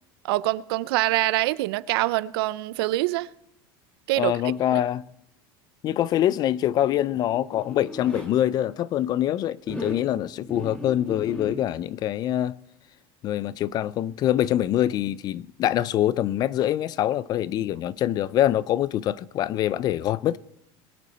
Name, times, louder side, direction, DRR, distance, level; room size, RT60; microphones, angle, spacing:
voice 1, 0.2-3.3 4.1-4.3 4.7-4.8, right 18 dB, 85° right, 0.5 m, -24 dB
voice 2, 4.2-5.0 5.8-12.6 13.2-20.4, left 12 dB, 35° left, 0.3 m, -24 dB
Zipper (clothing), 7.1-8.3 9.6-10.0 10.5-11.6, left 1 dB, 10° left, 1.9 m, -36 dB
21.5 x 8.2 x 4.2 m
cardioid pair, 155°, 12 cm